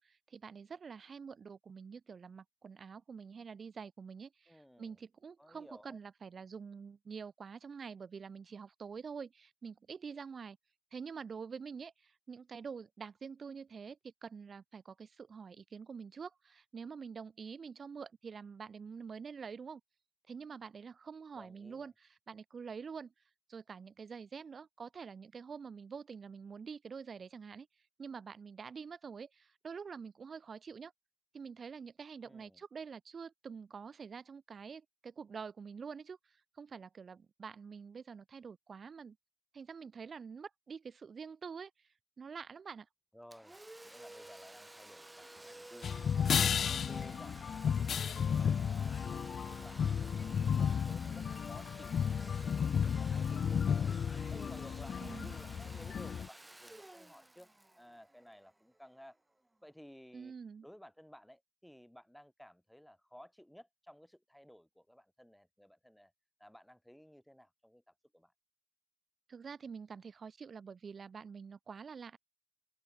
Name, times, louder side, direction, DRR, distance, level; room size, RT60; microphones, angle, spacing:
voice 1, 0.0-10.6 10.9-19.8 20.3-23.1 23.5-27.7 28.0-30.9 31.3-39.2 39.5-41.7 42.2-42.9 55.0-55.4 60.1-60.7 69.3-72.2, right 6 dB, 60° right, 0.7 m, -47 dB
voice 2, 4.5-5.0 5.4-6.0 21.3-21.9 32.2-32.6 43.1-43.6 43.8-45.9 46.3-54.0 54.3-59.2 59.6-60.3 60.6-66.1 66.4-67.8 68.1-68.3, equal, 5° left, 2.8 m, -57 dB
Domestic sounds home sounds, 43.3-58.8, right 1 dB, 15° right, 4.3 m, -53 dB
sound 1, 45.8-56.3, left 7 dB, 75° left, 0.5 m, -33 dB
open air
cardioid pair, 65°, 0 cm